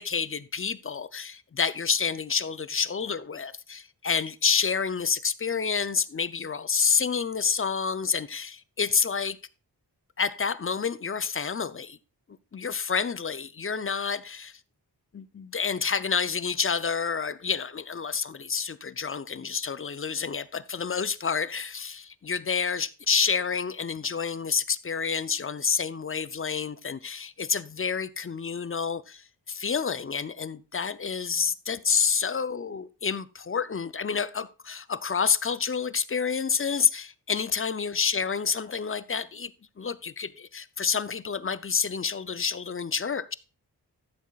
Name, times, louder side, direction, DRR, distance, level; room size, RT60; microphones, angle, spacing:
voice 1, 0.0-9.4 10.2-12.0 12.5-14.6 15.1-39.5 39.8-43.3, left 6 dB, 30° left, 0.5 m, -28 dB
13.0 x 7.2 x 2.4 m
cardioid pair, 45°, 41 cm